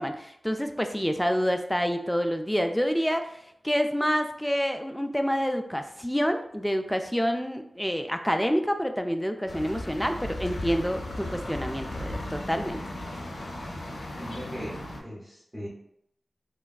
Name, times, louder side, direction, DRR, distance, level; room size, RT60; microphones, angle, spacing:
voice 1, 0.0-12.8, equal, 5° left, 6 dB, 0.3 m, -28 dB
sound 1, 9.5-15.0, left 1 dB, 85° left, 0.5 m, -36 dB
voice 2, 14.2-15.7, equal, 20° right, -7 dB, 0.8 m, -39 dB
3.3 x 2.3 x 2.3 m, 0.74 s
cardioid pair, 50°, 0 cm